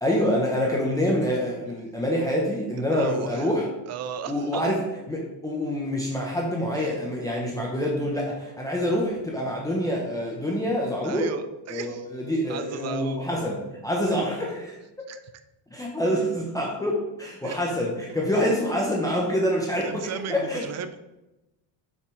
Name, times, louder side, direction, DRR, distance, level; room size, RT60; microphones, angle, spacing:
voice 1, 0.0-3.7 4.3-4.8 5.1-11.4 11.7-14.8 15.7-20.6, equal, 5° left, -2 dB, 0.8 m, -26 dB
voice 2, 2.8-3.5 3.9-4.7 6.7-7.0 11.0-12.1 12.5-13.2 14.0-14.2 15.1-15.2 17.4-17.6 19.8-21.0, right 7 dB, 35° right, 10 dB, 0.5 m, -35 dB
8.3 x 5.9 x 3.2 m, 0.98 s
cardioid pair, 155°, 49 cm